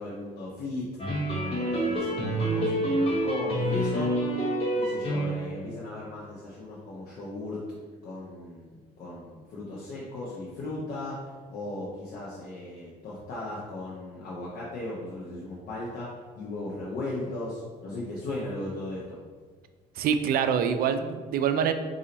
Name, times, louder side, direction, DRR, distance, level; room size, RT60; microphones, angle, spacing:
voice 1, 0.0-4.2 4.7-7.6 8.0-11.2 11.5-16.1 16.4-19.2, left 2 dB, 60° left, -6 dB, 0.9 m, -37 dB
sound 1, 1.0-5.6, right 1 dB, 35° left, 1.3 m, -27 dB
voice 2, 20.0-21.7, right 7 dB, 60° right, 9 dB, 0.4 m, -25 dB
4.3 x 2.7 x 4.0 m, 1.5 s
cardioid pair, 110°, 17 cm